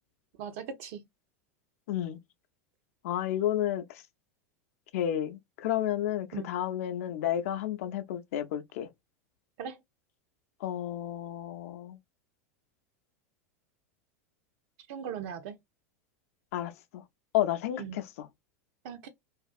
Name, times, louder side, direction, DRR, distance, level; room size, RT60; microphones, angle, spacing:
voice 1, 0.4-1.0 6.3-6.5 9.6-9.8 14.9-15.6 17.8-18.0 18.8-19.1, right 7 dB, 60° right, 0.6 m, -39 dB
voice 2, 1.9-2.2 3.0-3.8 4.9-8.9 10.6-12.0 16.5-17.0 17.3-18.0, left 11 dB, 65° left, 0.5 m, -31 dB
2.5 x 2.3 x 2.4 m
hypercardioid pair, 90°, 8 cm